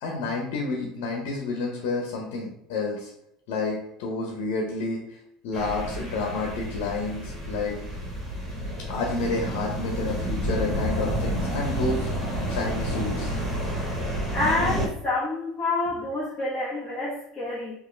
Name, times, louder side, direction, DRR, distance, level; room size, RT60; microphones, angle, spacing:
voice 1, 0.0-3.1 3.5-5.0 5.4-7.8 8.9-12.1 12.5-13.3, left 3 dB, 75° left, 0 dB, 0.9 m, -29 dB
sound 1, 5.5-14.9, equal, 20° right, 1.6 m, -30 dB
voice 2, 14.3-17.7, left 2 dB, 10° left, -11 dB, 1.6 m, -27 dB
4.6 x 2.7 x 3.3 m, 0.77 s
supercardioid pair, 120°, 0 cm